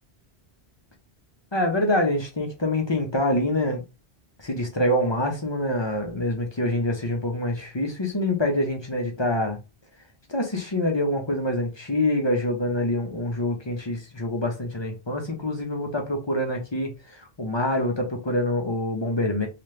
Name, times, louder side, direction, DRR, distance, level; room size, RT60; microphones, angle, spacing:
voice 1, 1.5-3.8 4.4-9.6 10.3-19.5, left 1 dB, 30° left, 0.6 m, -25 dB
2.9 x 2.4 x 3.2 m
omnidirectional pair, 1.0 m